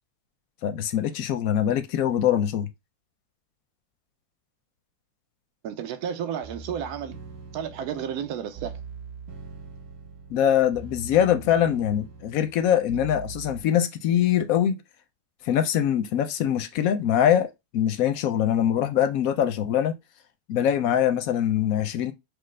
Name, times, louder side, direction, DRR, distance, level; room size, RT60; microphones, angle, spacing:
voice 1, 0.6-2.7 10.3-14.8 15.4-20.0 20.5-22.1, left 10 dB, 70° left, 0.9 m, -23 dB
voice 2, 5.6-7.1 7.5-8.8, right 8 dB, 70° right, 1.1 m, -32 dB
sound 1, 6.4-13.6, right 5 dB, 45° right, 1.2 m, -42 dB
6.1 x 2.3 x 3.2 m
omnidirectional pair, 1.8 m